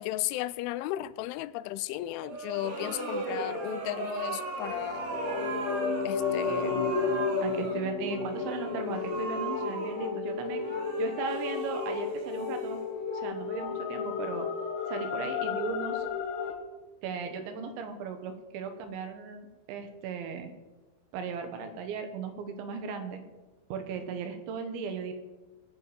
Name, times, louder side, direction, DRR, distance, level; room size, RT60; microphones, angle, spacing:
voice 1, 0.0-5.1 6.1-6.8, left 15 dB, 90° left, 3.0 m, -35 dB
sound 1, 2.2-13.2, right 3 dB, 60° right, 1.6 m, -38 dB
sound 2, 4.7-16.5, left 5 dB, 70° left, 3.5 m, -32 dB
voice 2, 7.4-10.6 11.0-12.8 13.1-14.5 14.9-16.1 17.0-20.5 21.1-23.2 23.7-25.1, right 6 dB, 80° right, 3.6 m, -37 dB
19.5 x 7.7 x 5.1 m
omnidirectional pair, 5.4 m